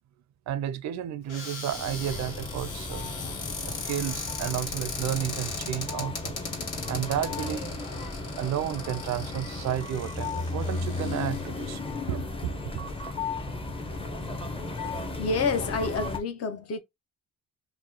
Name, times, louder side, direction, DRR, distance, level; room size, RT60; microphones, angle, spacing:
voice 1, 0.5-3.1 3.7-6.4 6.9-7.7 8.4-11.8 12.1-12.7, right 11 dB, 65° right, 0.5 m, -32 dB
Cupboard open or close, 1.3-11.7 12.3-12.4 12.7-13.0, left 4 dB, 80° left, 1.7 m, -38 dB
sound 1, 1.7-16.2, left 3 dB, 20° left, 0.7 m, -35 dB
voice 2, 14.8-16.8, left 4 dB, 55° left, 0.8 m, -29 dB
3.0 x 2.1 x 3.7 m
cardioid pair, 90°, 30 cm